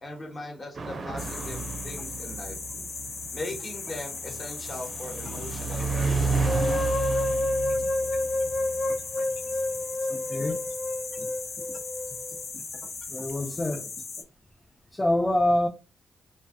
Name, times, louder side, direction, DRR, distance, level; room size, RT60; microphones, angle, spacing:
voice 1, 0.0-2.6 3.3-6.6, left 2 dB, 40° left, 1.0 m, -39 dB
sound 1, 0.7-11.7, right 4 dB, 50° right, 0.5 m, -33 dB
sound 2, 1.2-14.2, left 4 dB, 55° left, 0.7 m, -38 dB
sound 3, 6.4-12.5, left 2 dB, 85° left, 1.0 m, -29 dB
voice 2, 10.1-10.6 13.1-13.9 14.9-15.7, left 1 dB, 20° left, 0.4 m, -26 dB
2.5 x 2.1 x 2.5 m
cardioid pair, 60°, 0 cm